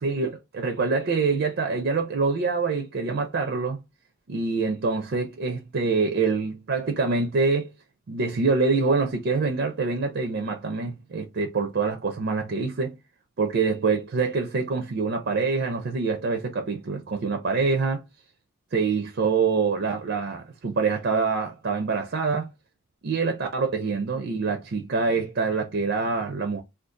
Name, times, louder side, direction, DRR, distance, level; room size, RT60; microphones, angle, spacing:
voice 1, 0.0-3.8 4.3-7.7 8.1-12.9 13.4-18.0 18.7-22.5 23.0-26.6, right 4 dB, 50° right, 0.4 m, -25 dB
2.5 x 2.3 x 3.5 m
head